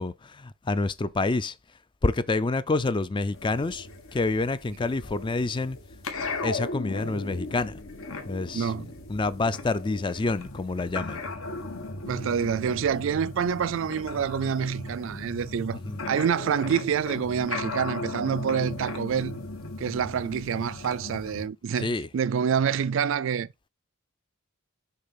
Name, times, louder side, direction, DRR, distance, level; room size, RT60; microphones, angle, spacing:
voice 1, 0.0-1.5 2.0-5.8 6.4-7.7 8.3-8.7 9.1-11.2 15.8-16.0 21.8-22.1, left 3 dB, 20° left, 0.4 m, -27 dB
sound 1, 3.3-21.5, left 2 dB, 70° left, 1.5 m, -37 dB
voice 2, 8.5-8.9 12.1-15.8 16.1-19.4 19.8-23.5, right 7 dB, 60° right, 0.3 m, -27 dB
6.7 x 3.3 x 5.7 m
head